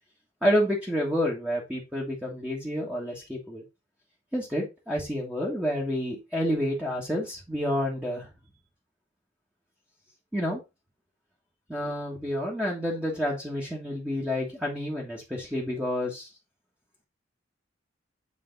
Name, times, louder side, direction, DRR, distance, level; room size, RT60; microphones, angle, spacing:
voice 1, 0.4-3.6 4.3-8.3 10.3-10.6 11.7-16.3, equal, 5° right, -3 dB, 1.4 m, -29 dB
7.6 x 3.5 x 3.8 m, 0.24 s
head